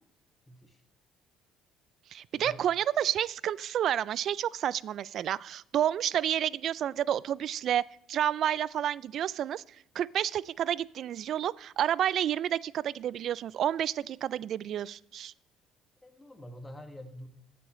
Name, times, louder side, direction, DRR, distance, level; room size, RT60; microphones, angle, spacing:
voice 1, 0.5-0.8 2.3-2.7 16.0-17.3, equal, 15° left, 5 dB, 1.7 m, -46 dB
voice 2, 2.1-7.8 8.1-9.6 10.0-15.3, right 10 dB, 60° right, 21 dB, 0.3 m, -30 dB
13.5 x 8.6 x 3.1 m, 0.73 s
cardioid pair, 105°, 0 cm